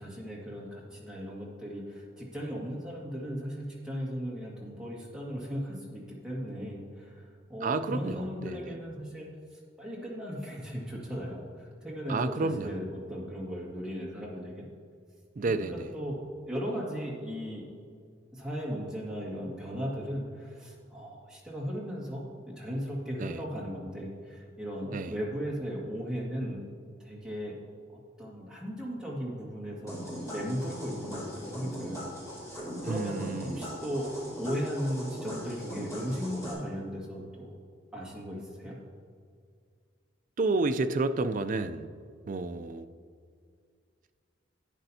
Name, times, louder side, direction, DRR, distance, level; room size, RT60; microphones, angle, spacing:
voice 1, 0.0-14.6 15.4-16.2 16.5-17.6 18.3-26.6 27.0-27.6 27.9-32.0 32.8-34.1 34.4-37.6 37.9-38.8, equal, 5° right, -6 dB, 1.9 m, -37 dB
voice 2, 7.6-8.7 12.1-12.8 15.4-15.9 23.2-23.4 24.9-25.2 32.8-33.8 40.4-41.9 42.3-42.9, right 3 dB, 40° right, 10 dB, 0.4 m, -31 dB
sound 1, 29.9-36.5, equal, 15° left, 2.3 m, -40 dB
11.5 x 8.8 x 2.8 m, 2.2 s
head